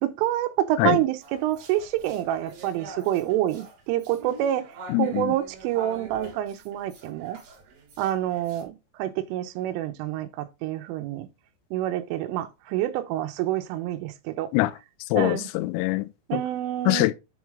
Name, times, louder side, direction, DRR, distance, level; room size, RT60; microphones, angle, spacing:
voice 1, 0.0-4.6 5.0-7.4 8.0-11.3 11.7-14.5 15.2-15.5 16.3-17.0, right 13 dB, 85° right, 3.2 m, -27 dB
sound 1, 1.2-8.6, right 2 dB, 65° right, 5.1 m, -45 dB
voice 2, 4.9-5.3 14.5-14.7 15.1-16.4 16.9-17.1, left 18 dB, 85° left, 2.8 m, -23 dB
10.5 x 4.0 x 3.6 m
omnidirectional pair, 5.9 m